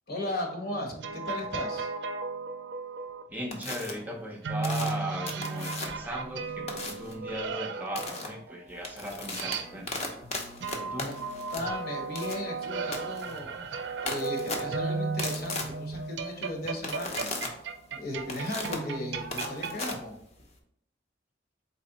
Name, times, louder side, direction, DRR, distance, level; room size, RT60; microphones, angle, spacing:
voice 1, 0.1-1.9 11.0-11.2 11.5-17.3 17.9-20.1, left 1 dB, 55° left, 1 dB, 1.1 m, -36 dB
sound 1, 0.7-3.2 4.4-10.1 10.6-19.8, right 4 dB, 75° right, 0.4 m, -35 dB
voice 2, 3.3-10.1 10.8-11.1, equal, 10° right, 1 dB, 0.5 m, -37 dB
sound 2, 3.5-3.9 4.6-6.1 6.7-7.1 7.9-8.3 8.7-20.6, left 2 dB, 35° left, 0.7 m, -37 dB
4.1 x 3.1 x 3.9 m, 0.69 s
head